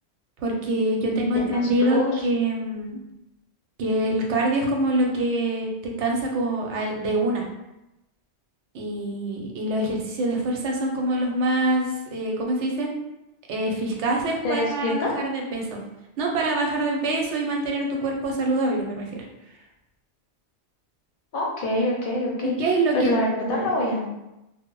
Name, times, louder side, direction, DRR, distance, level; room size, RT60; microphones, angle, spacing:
voice 1, 0.4-3.0 3.8-7.4 8.7-12.9 13.5-15.8 16.2-19.2 22.4-23.7, right 1 dB, 90° right, 0 dB, 0.9 m, -25 dB
voice 2, 1.0-2.2 14.4-15.1 21.3-24.1, left 1 dB, 60° left, -2 dB, 0.6 m, -26 dB
2.0 x 2.0 x 3.7 m, 0.92 s
omnidirectional pair, 1.1 m